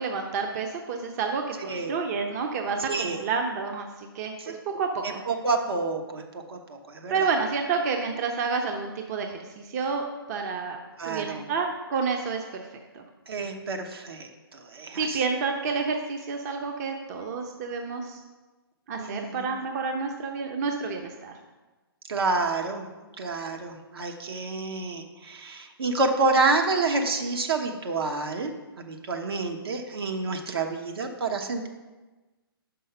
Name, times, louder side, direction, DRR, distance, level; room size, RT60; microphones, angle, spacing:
voice 1, 0.0-5.2 7.1-10.0 10.3-10.8 11.1-12.6 12.9-13.0 15.0-18.2 18.9-21.3, right 5 dB, 40° right, 4 dB, 0.7 m, -29 dB
voice 2, 1.6-1.9 2.8-3.2 4.4-4.5 5.0-7.3 11.0-11.5 13.3-15.2 19.0-19.6 22.1-22.9 23.2-28.5 28.9-31.7, right 3 dB, 70° right, 3 dB, 1.0 m, -28 dB
5.7 x 5.4 x 5.5 m, 1.2 s
hypercardioid pair, 135°, 13 cm